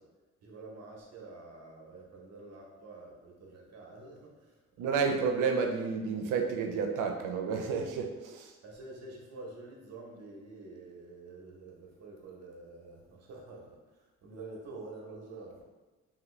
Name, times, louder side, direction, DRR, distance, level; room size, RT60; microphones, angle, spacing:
voice 1, 0.4-5.0 8.6-15.6, right 3 dB, 55° right, -1 dB, 0.9 m, -48 dB
voice 2, 4.8-8.5, right 5 dB, 90° right, 3 dB, 0.5 m, -30 dB
2.8 x 2.6 x 3.2 m, 1.2 s
cardioid pair, 90°, 30 cm